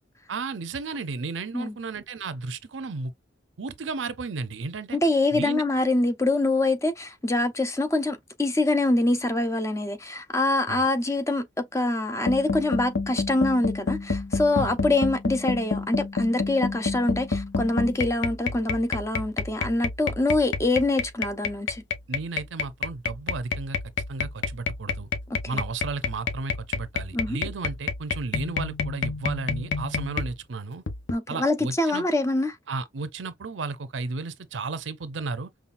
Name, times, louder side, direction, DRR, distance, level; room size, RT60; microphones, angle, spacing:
voice 1, 0.3-3.1 3.6-5.0 5.3-5.6 10.7-10.8 14.6-14.8 22.1-23.8 24.1-25.1 25.5-30.8 31.3-32.1 32.7-35.5, right 4 dB, 85° right, 0.6 m, -33 dB
voice 2, 4.9-21.8 25.3-25.6 27.1-27.4 31.1-32.6, left 2 dB, 15° left, 0.6 m, -25 dB
sound 1, 12.3-30.3 30.9-31.1, left 4 dB, 80° left, 0.8 m, -29 dB
5.5 x 2.3 x 2.5 m
head